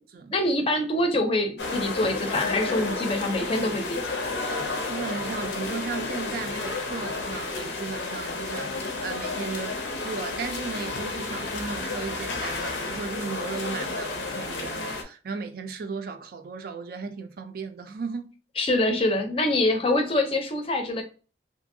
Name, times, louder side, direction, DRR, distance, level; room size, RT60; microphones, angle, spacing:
voice 1, 0.3-4.0 18.6-21.0, left 1 dB, 30° left, 0.5 m, -25 dB
sound 1, 1.6-15.0, left 3 dB, 80° left, 0.6 m, -31 dB
voice 2, 4.9-18.3, right 5 dB, 55° right, 0.4 m, -35 dB
2.7 x 2.6 x 2.6 m
head